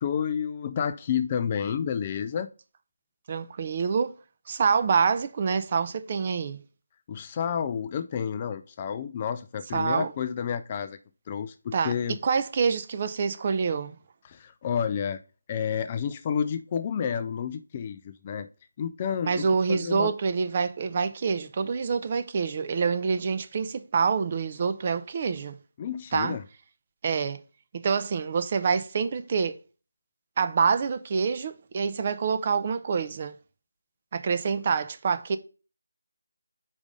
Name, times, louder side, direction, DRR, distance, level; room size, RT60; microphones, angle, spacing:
voice 1, 0.0-2.5 7.1-11.0 11.3-12.2 14.2-15.2 15.5-18.5 18.8-20.1 25.8-26.4, left 7 dB, 25° left, 0.3 m, -30 dB
voice 2, 3.3-4.1 4.5-6.6 9.7-10.1 11.7-11.9 12.2-14.0 19.3-25.5 26.1-26.4 27.0-27.4 27.7-29.6 30.4-33.4 34.1-35.4, right 5 dB, 30° right, 0.5 m, -26 dB
5.0 x 3.6 x 5.1 m
figure-of-eight pair, 170°, 0 cm